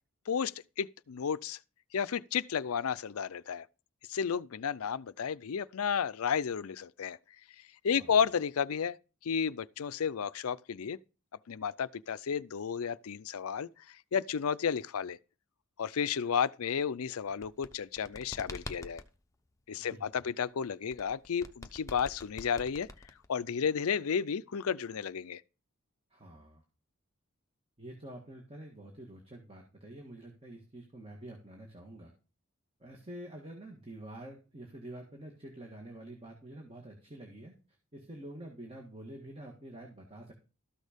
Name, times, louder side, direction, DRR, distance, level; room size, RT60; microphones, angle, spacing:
voice 1, 0.8-1.6 1.9-3.7 4.1-7.2 7.8-9.0 9.2-11.0 11.5-15.2 15.8-19.0 19.7-22.9 23.3-25.4, left 7 dB, 80° left, 0.5 m, -32 dB
sound 1, 17.3-19.1 20.9-23.5, left 2 dB, 15° left, 0.7 m, -46 dB
voice 2, 26.1-26.6 27.8-32.1 32.8-37.5 37.9-40.3, right 1 dB, 25° right, 1.7 m, -47 dB
13.0 x 6.4 x 5.1 m
head